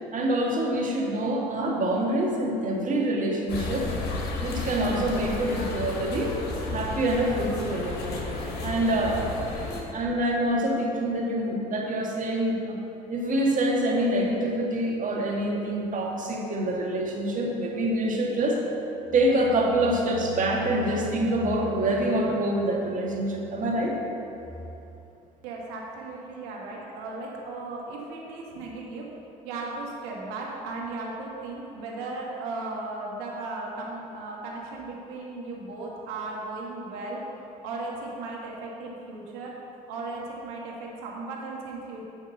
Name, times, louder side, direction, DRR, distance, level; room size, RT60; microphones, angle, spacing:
voice 1, 0.1-3.9 4.4-6.3 6.7-8.3 8.6-9.2 9.9-12.8 13.1-18.6 19.1-24.0, right 1 dB, 45° right, -2 dB, 1.8 m, -26 dB
sound 1, 3.5-9.8, left 3 dB, 60° left, 1.6 m, -33 dB
voice 2, 9.0-9.4 25.4-29.1 29.4-39.5 39.9-42.0, right 3 dB, 80° right, -3 dB, 1.6 m, -36 dB
10.5 x 3.7 x 6.6 m, 2.8 s
hypercardioid pair, 65°, 19 cm